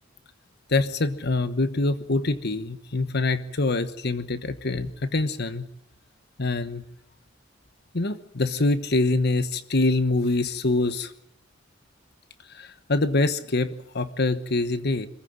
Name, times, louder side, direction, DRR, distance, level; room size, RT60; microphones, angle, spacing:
voice 1, 0.7-5.7 6.4-6.8 7.9-11.1 12.5-15.1, left 2 dB, 55° left, 1.1 m, -25 dB
26.5 x 15.0 x 8.8 m
head